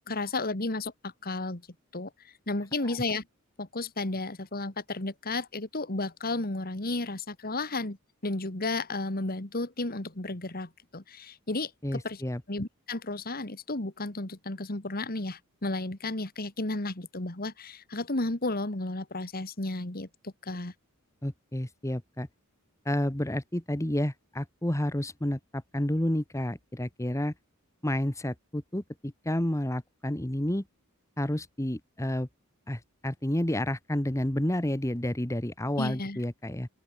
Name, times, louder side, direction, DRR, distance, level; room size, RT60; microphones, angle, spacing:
voice 1, 0.0-1.6 1.9-3.2 3.6-8.0 8.2-12.2 12.5-20.7 35.8-36.2, left 2 dB, 45° left, 2.2 m, -33 dB
voice 2, 11.8-12.4 21.2-22.3 22.8-27.3 27.8-30.6 31.2-32.3 32.7-36.7, left 1 dB, 15° left, 1.3 m, -30 dB
open air
head